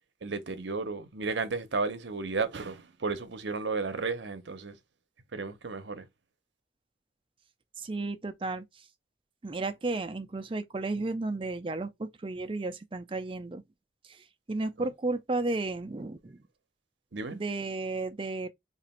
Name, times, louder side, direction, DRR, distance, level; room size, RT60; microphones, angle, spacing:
voice 1, 0.2-4.8 5.3-6.1 14.8-14.9 17.1-17.4, right 4 dB, 70° right, 0.7 m, -33 dB
voice 2, 7.8-8.9 9.4-13.6 14.0-16.4 17.3-18.5, right 2 dB, 30° right, 0.4 m, -33 dB
3.0 x 2.5 x 4.2 m
head